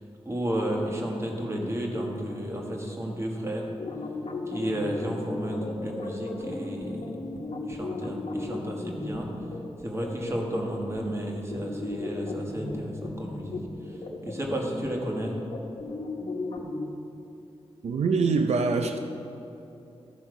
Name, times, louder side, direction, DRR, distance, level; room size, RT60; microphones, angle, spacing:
voice 1, 0.2-3.7 4.5-7.1 7.6-9.3 9.8-13.6 13.9-15.4, right 1 dB, 25° right, -1 dB, 1.4 m, -32 dB
sound 1, 3.8-16.9, left 2 dB, 70° left, 1.0 m, -36 dB
voice 2, 17.8-19.0, right 4 dB, 85° right, 5 dB, 0.5 m, -24 dB
14.0 x 5.6 x 4.8 m, 2.8 s
wide cardioid pair, 155°, 11 cm